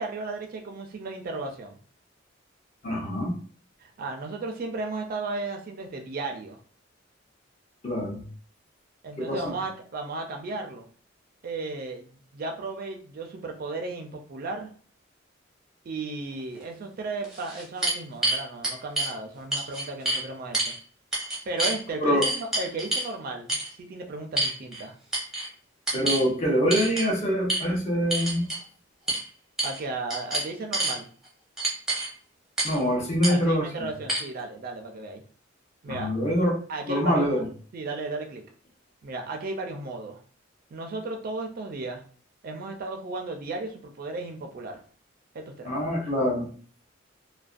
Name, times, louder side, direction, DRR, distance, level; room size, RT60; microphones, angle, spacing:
voice 1, 0.0-1.8 3.8-6.6 9.0-10.9 11.4-14.7 15.8-20.8 21.5-24.9 29.6-31.1 33.3-35.2 35.8-36.1 36.7-37.4 37.7-38.4 39.0-40.2 40.7-42.0 42.4-44.8 45.3-45.7, right 3 dB, 50° right, 3 dB, 0.4 m, -35 dB
voice 2, 2.8-3.4 7.8-8.2 9.2-9.5 22.0-22.2 25.9-28.5 32.6-33.9 35.9-36.6 36.9-37.5 45.6-46.5, equal, 35° left, -1 dB, 0.7 m, -25 dB
sound 1, 16.6-16.7 17.2-19.1 19.5-20.2 20.5-20.8 21.1-21.8 22.2-23.1 23.5-23.7 24.4-24.8 25.1-25.5 25.9-26.3 26.7-27.1 27.5-27.6 28.1-28.6 29.1-29.2 29.6-29.8 30.1-31.0 31.6-32.1 32.6-32.8 33.2-33.3 34.1-34.2, right 1 dB, ahead, 0.7 m, -27 dB
2.4 x 2.1 x 2.4 m, 0.43 s
head